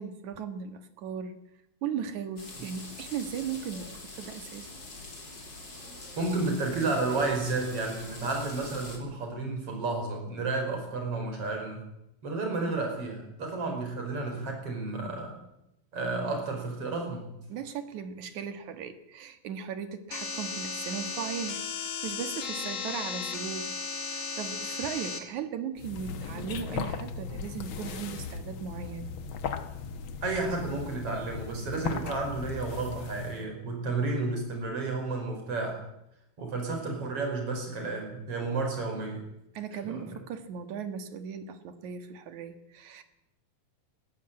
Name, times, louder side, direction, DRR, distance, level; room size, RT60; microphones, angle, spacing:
voice 1, 0.0-1.4 1.8-4.7 17.5-23.7 24.1-29.1 39.5-43.0, right 7 dB, 60° right, 9 dB, 2.8 m, -37 dB
sound 1, 2.4-9.0, left 2 dB, 30° left, 4.3 m, -44 dB
voice 2, 5.8-11.8 12.2-15.4 15.9-17.3 30.2-35.8 36.4-39.2 39.8-40.2, right 3 dB, 40° right, 3 dB, 6.0 m, -32 dB
sound 2, 20.1-25.2, left 5 dB, 45° left, 2.9 m, -35 dB
sound 3, 25.8-33.5, left 6 dB, 65° left, 1.2 m, -37 dB
21.0 x 14.5 x 8.9 m, 0.85 s
omnidirectional pair, 4.1 m